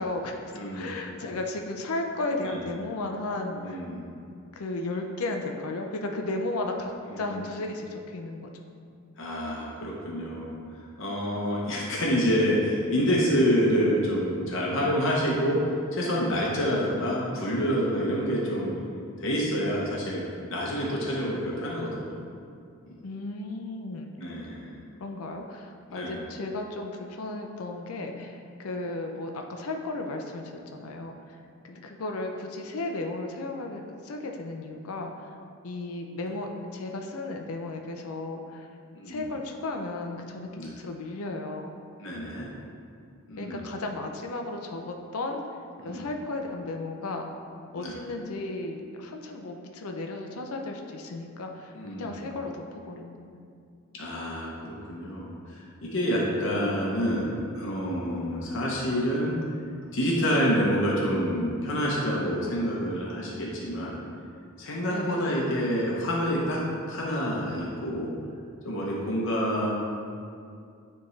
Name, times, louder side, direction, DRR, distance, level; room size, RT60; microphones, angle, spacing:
voice 1, 0.0-0.4 0.7-3.8 4.5-8.5 23.0-24.1 25.0-31.4 31.6-35.3 35.6-38.7 39.1-41.7 43.4-45.4 45.8-47.3 47.7-51.7 52.0-53.2 64.9-65.3, left 2 dB, 85° left, 3 dB, 0.5 m, -34 dB
voice 2, 0.5-0.9 2.4-2.7 3.5-4.0 7.0-7.4 9.2-10.5 11.0-15.6 15.9-18.8 19.2-20.2 20.5-22.2 22.9-23.0 24.2-24.8 25.9-26.2 38.9-39.3 40.6-40.7 42.0-42.5 43.3-43.7 45.8-46.1 47.8-48.0 51.7-52.3 53.9-59.3 59.9-64.0 64.6-66.6 66.9-68.1 68.6-69.7, equal, 60° left, -4 dB, 0.9 m, -27 dB
9.4 x 3.5 x 3.2 m, 2.4 s
head